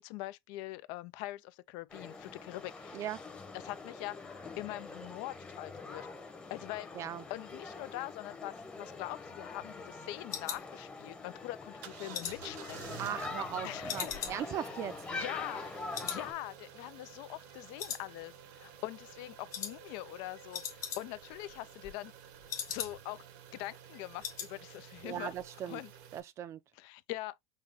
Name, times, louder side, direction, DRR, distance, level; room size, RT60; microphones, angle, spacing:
voice 1, 0.0-3.1 3.5-4.2 4.6-6.1 6.5-6.9 7.3-13.0 13.6-14.7 15.1-15.6 16.0-22.1 22.7-23.2 23.5-25.3 25.7-25.9 26.7-27.3, left 17 dB, 65° left, 0.4 m, -43 dB
sound 1, 1.9-16.3, left 3 dB, 15° left, 0.9 m, -44 dB
sound 2, 8.6-11.4 11.7-13.5 13.9-15.7 15.9-16.3 16.6-16.7 17.1-17.5 17.8-18.6 18.9-19.1 19.5-19.8 20.1-20.2 20.4-21.3 21.6-23.2 23.6-23.7 23.9-24.5 24.8-25.1 25.4-25.5, left 8 dB, 40° left, 1.4 m, -41 dB
sound 3, 11.8-26.2, right 8 dB, 80° right, 1.0 m, -52 dB
voice 2, 13.0-14.9 25.0-25.8 26.1-26.6, right 10 dB, 35° right, 0.4 m, -38 dB
5.5 x 2.3 x 3.4 m
cardioid pair, 155°, 8 cm